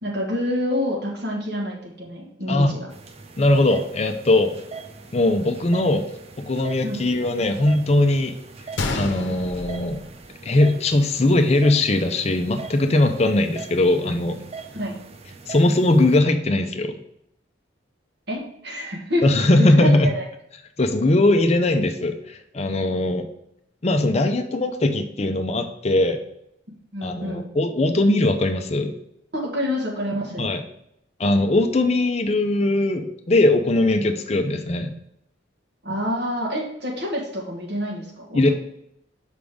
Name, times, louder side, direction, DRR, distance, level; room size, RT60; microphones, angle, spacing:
voice 1, 0.0-2.9 6.8-6.9 14.7-14.9 18.3-19.3 19.6-20.2 26.9-27.4 29.3-30.5 35.8-38.5, left 1 dB, 55° right, -1 dB, 1.6 m, -27 dB
sound 1, 2.9-16.2, right 4 dB, 30° right, 0.5 m, -41 dB
voice 2, 3.4-4.6 5.1-6.1 6.4-8.4 8.9-10.0 10.4-14.4 15.5-17.0 19.2-20.1 20.8-23.3 23.8-26.2 27.0-28.9 30.4-30.6 31.2-34.9 38.3-38.5, left 2 dB, 35° left, 7 dB, 0.5 m, -20 dB
Gunshot gunfire, 8.8-10.8 11.1-11.2 11.9-12.1, left 3 dB, 75° left, 0.8 m, -30 dB
6.4 x 5.0 x 3.5 m, 0.75 s
head